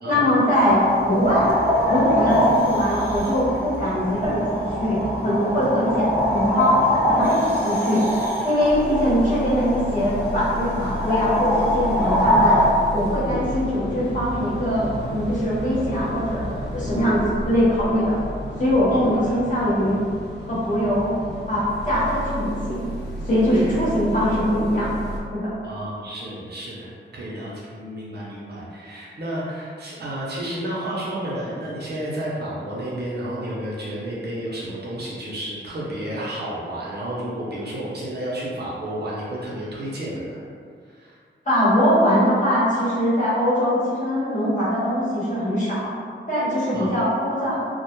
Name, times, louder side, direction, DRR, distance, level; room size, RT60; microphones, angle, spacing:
voice 1, 0.0-1.5 1.9-6.8 7.1-8.0 8.4-12.6 12.9-18.2 18.6-20.0 20.5-21.1 21.5-22.9 23.2-24.9 25.3-25.5 41.4-45.9 46.3-47.6, equal, 40° left, -10 dB, 0.9 m, -22 dB
sound 1, 0.5-12.7, equal, 10° right, 0.5 m, -23 dB
sound 2, 8.6-25.2, equal, 55° left, 0.5 m, -32 dB
voice 2, 13.2-13.6 18.9-19.3 23.5-23.8 25.6-40.4 40.9-41.1 46.7-46.9, right 1 dB, 55° right, -6 dB, 0.6 m, -31 dB
2.1 x 2.0 x 2.8 m, 2.2 s
wide cardioid pair, 115°, 21 cm